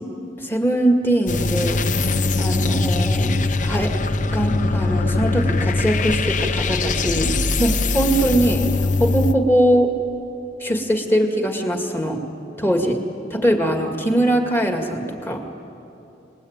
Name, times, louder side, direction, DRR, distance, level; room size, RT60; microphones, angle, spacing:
voice 1, 0.4-3.9 4.3-8.7 9.0-9.9 10.6-12.2 12.6-13.0 13.3-15.4, right 1 dB, 10° left, 3 dB, 2.2 m, -21 dB
sound 1, 1.3-9.3, left 3 dB, 40° left, 0.7 m, -21 dB
29.0 x 20.0 x 9.0 m, 2.9 s
head